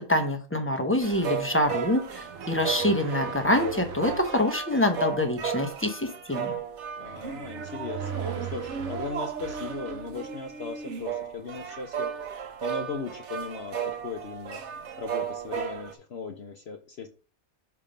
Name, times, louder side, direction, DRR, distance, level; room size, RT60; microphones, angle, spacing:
voice 1, 0.0-6.6, left 1 dB, 15° left, 4 dB, 0.6 m, -26 dB
sound 1, 1.0-15.9, right 7 dB, 60° right, 1.0 m, -34 dB
sound 2, 2.1-4.4 7.0-10.1, right 6 dB, 90° right, 1.3 m, -39 dB
voice 2, 6.9-12.1 12.6-14.6 15.0-17.1, left 5 dB, 55° left, 4 dB, 0.9 m, -38 dB
5.6 x 3.6 x 5.0 m, 0.35 s
omnidirectional pair, 1.4 m